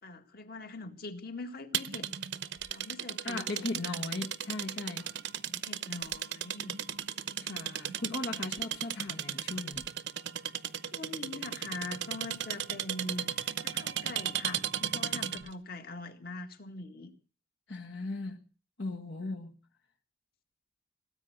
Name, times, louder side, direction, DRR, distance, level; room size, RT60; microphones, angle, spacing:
voice 1, 0.0-2.1 2.7-4.0 5.0-5.1 5.4-6.8 7.5-7.7 8.0-8.2 10.8-17.1, left 2 dB, 50° left, 2.0 m, -43 dB
sound 1, 1.7-15.5, right 10 dB, 65° right, 0.8 m, -36 dB
voice 2, 3.2-5.1 7.4-9.9 17.7-18.5 18.8-19.6, left 2 dB, 70° left, 1.5 m, -38 dB
18.0 x 9.3 x 8.1 m
head